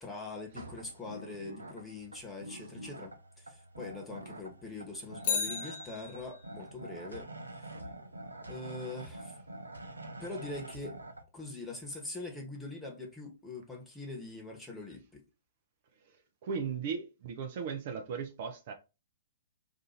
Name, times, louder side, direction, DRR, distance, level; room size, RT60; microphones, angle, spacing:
voice 1, 0.0-7.3 7.6-7.7 8.4-9.4 10.2-11.0 11.3-15.2, left 2 dB, 10° left, 1.2 m, -43 dB
sound 1, 0.5-11.2, right 1 dB, 85° right, 0.6 m, -46 dB
Bicycle, 5.2-6.6 14.9-15.0, left 6 dB, 50° left, 0.7 m, -35 dB
voice 2, 16.0-18.7, right 6 dB, 50° right, 0.7 m, -37 dB
2.7 x 2.6 x 4.1 m
figure-of-eight pair, 115°, 0 cm